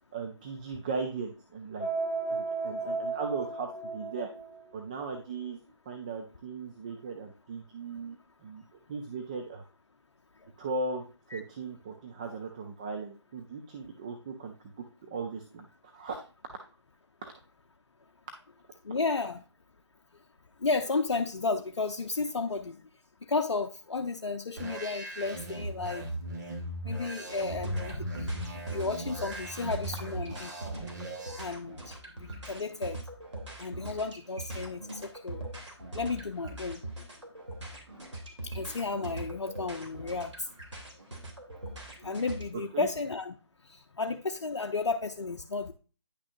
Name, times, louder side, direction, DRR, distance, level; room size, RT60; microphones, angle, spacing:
voice 1, 0.1-1.9 2.3-4.3 4.7-5.6 5.9-9.6 10.6-11.0 11.3-14.5 15.0-16.2 17.2-17.3 42.7-42.9, right 4 dB, 15° right, 4 dB, 0.4 m, -37 dB
sound 1, 1.8-4.6, right 3 dB, 5° left, 1.9 m, -34 dB
voice 2, 18.8-19.4 20.6-22.8 23.3-26.1 26.8-28.3 28.7-30.5 31.4-33.0 33.6-35.5 35.9-36.8 38.4-40.5 42.0-43.3 43.7-45.7, left 3 dB, 70° left, 3 dB, 0.6 m, -33 dB
sound 2, 24.6-31.4, right 1 dB, 40° right, 2.0 m, -38 dB
sound 3, 27.3-42.4, right 1 dB, 85° right, 2.8 m, -42 dB
9.6 x 6.0 x 2.5 m, 0.35 s
figure-of-eight pair, 150°, 15 cm